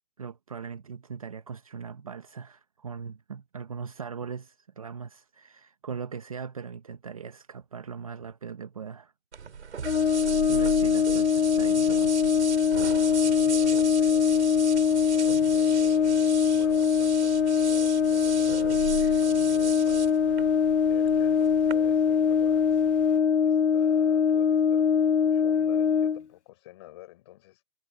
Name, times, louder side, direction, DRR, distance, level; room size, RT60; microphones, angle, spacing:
voice 1, 0.2-9.1 10.5-12.2, right 6 dB, 25° right, 1.2 m, -40 dB
sound 1, 9.3-21.7, right 6 dB, 50° right, 5.3 m, -37 dB
Brass instrument, 9.8-26.2, left 7 dB, 55° left, 1.0 m, -23 dB
voice 2, 13.2-14.6 15.2-18.6 19.2-20.4 20.8-22.6 23.4-27.6, left 17 dB, 20° left, 4.4 m, -48 dB
sound 2, 14.2-23.2, left 4 dB, 5° left, 2.4 m, -56 dB
hypercardioid pair, 175°, 41 cm